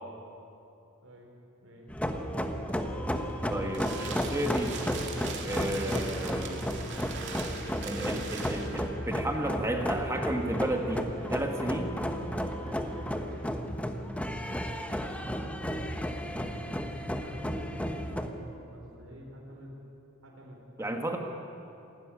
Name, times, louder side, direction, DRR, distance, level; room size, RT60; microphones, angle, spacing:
voice 1, 1.6-1.9 16.6-19.7 20.2-21.0, equal, 75° right, -2 dB, 4.3 m, -48 dB
sound 1, 1.9-18.3, equal, 5° left, 1.1 m, -33 dB
sound 2, 3.2-8.9, right 5 dB, 60° right, 2.3 m, -41 dB
voice 2, 3.5-4.8 5.4-6.6 7.8-12.0 20.8-21.2, right 1 dB, 15° right, 3 dB, 1.6 m, -33 dB
sound 3, 3.5-13.4, equal, 90° right, 3.8 m, -50 dB
27.0 x 12.5 x 9.8 m, 2.8 s
head